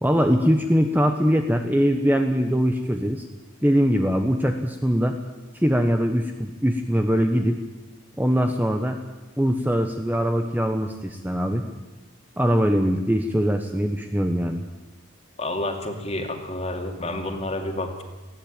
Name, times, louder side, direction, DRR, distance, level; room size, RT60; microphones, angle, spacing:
voice 1, 0.0-3.2 3.6-5.2 5.5-7.6 8.2-9.0 9.4-11.6 12.4-14.6, equal, 10° right, 5 dB, 1.0 m, -22 dB
voice 2, 15.4-18.0, left 1 dB, 30° left, 5 dB, 2.5 m, -29 dB
20.0 x 16.0 x 9.0 m, 1.2 s
head